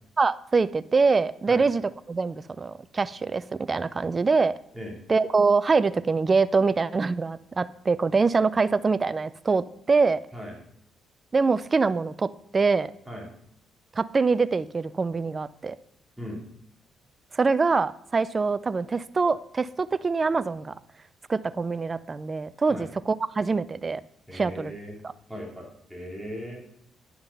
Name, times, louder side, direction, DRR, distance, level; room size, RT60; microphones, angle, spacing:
voice 1, 0.2-1.8 2.1-4.6 5.1-10.2 11.3-12.9 14.0-15.8 17.3-20.7 21.3-24.0 24.3-24.7, right 4 dB, 30° right, 16 dB, 0.4 m, -24 dB
voice 2, 24.3-25.0 25.3-26.6, equal, ahead, -2 dB, 3.1 m, -38 dB
9.8 x 5.9 x 5.3 m, 0.72 s
cardioid pair, 90°, 0 cm